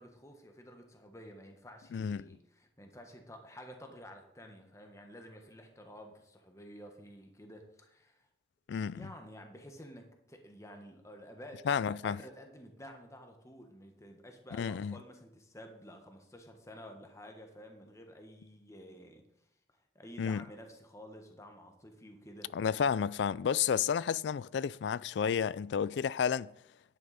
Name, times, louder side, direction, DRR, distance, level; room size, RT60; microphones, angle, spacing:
voice 1, 0.0-8.3 8.8-19.2 19.7-22.5, equal, 15° left, 1.3 m, -51 dB
voice 2, 1.9-2.3 8.7-9.1 11.7-12.2 14.6-15.0 20.2-20.4 22.5-26.5, left 7 dB, 65° left, 0.3 m, -31 dB
11.0 x 9.3 x 4.1 m
head